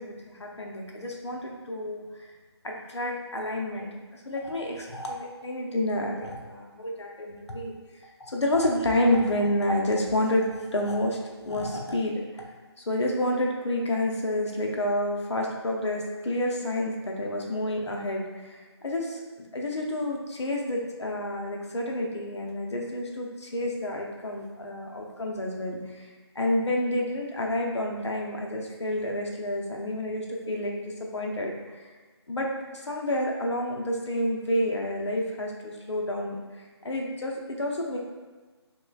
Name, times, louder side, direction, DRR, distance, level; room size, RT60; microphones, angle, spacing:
voice 1, 0.0-2.1 2.6-7.8 8.2-12.4 12.8-19.2 19.5-26.1 26.4-31.8 32.3-36.4 36.8-38.0, left 1 dB, 80° left, 0 dB, 0.7 m, -29 dB
3.2 x 3.0 x 2.3 m, 1.3 s
figure-of-eight pair, 165°, 14 cm